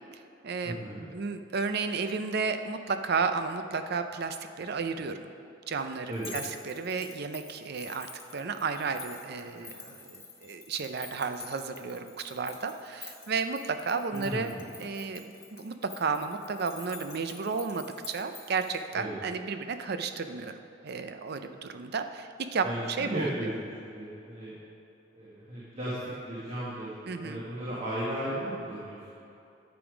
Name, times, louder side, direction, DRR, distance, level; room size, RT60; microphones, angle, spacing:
voice 1, 0.1-5.3 5.7-8.1 8.3-14.5 14.8-22.7 23.0-23.5 27.1-27.4, right 5 dB, 55° right, 8 dB, 0.5 m, -33 dB
voice 2, 0.6-1.1 6.1-6.3 14.1-14.7 18.9-19.1 22.6-23.5 23.8-24.5 25.1-26.9 27.2-29.3, right 1 dB, 35° right, -8 dB, 1.7 m, -35 dB
sound 1, 6.1-18.8, left 4 dB, 15° left, 1.1 m, -48 dB
10.5 x 7.1 x 5.0 m, 2.8 s
head